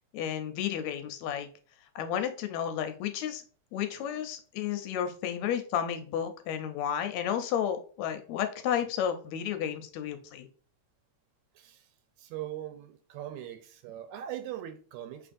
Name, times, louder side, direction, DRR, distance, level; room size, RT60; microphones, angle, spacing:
voice 1, 0.1-1.5 2.0-3.4 3.7-10.5, left 9 dB, 75° left, 1.8 m, -32 dB
voice 2, 11.6-11.9 12.2-15.3, right 12 dB, 80° right, 1.9 m, -40 dB
5.6 x 3.3 x 2.5 m
omnidirectional pair, 3.4 m